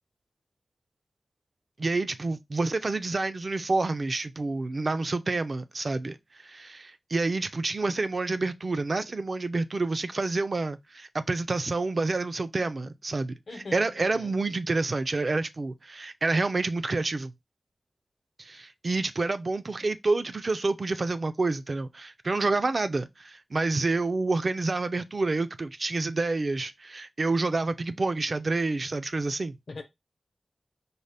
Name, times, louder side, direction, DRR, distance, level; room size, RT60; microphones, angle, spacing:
voice 1, 1.8-13.3 13.7-17.3 18.4-29.6, right 3 dB, 55° right, 0.4 m, -28 dB
voice 2, 13.5-14.3 29.7-29.8, left 3 dB, 70° left, 0.8 m, -41 dB
4.0 x 2.1 x 3.3 m
cardioid pair, 55°, 0 cm